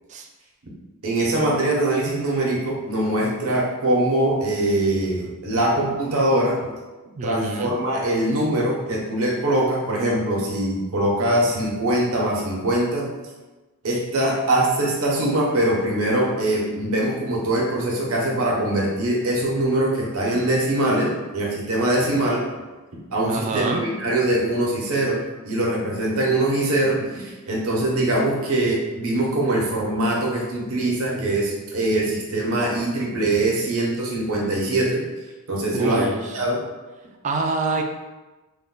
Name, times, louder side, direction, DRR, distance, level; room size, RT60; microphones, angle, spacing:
voice 1, 1.0-6.6 7.2-13.1 13.8-22.4 23.1-35.0 35.5-36.1 36.3-36.6, right 1 dB, 70° right, -3 dB, 0.9 m, -22 dB
voice 2, 7.2-7.8 23.2-23.8 35.7-36.4 37.2-37.8, right 3 dB, 35° right, 3 dB, 0.3 m, -26 dB
3.2 x 2.2 x 3.7 m, 1.2 s
head